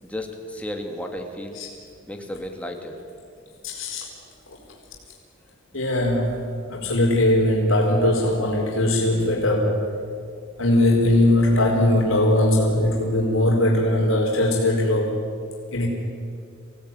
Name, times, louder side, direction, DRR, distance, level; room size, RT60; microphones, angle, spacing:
voice 1, 0.0-1.6 2.1-3.0, left 1 dB, 5° left, 3 dB, 2.6 m, -33 dB
voice 2, 3.6-4.1 5.7-6.4 6.7-9.9 10.6-15.2 15.7-15.9, left 1 dB, 75° left, -2 dB, 4.5 m, -20 dB
27.0 x 17.5 x 9.8 m, 2.3 s
head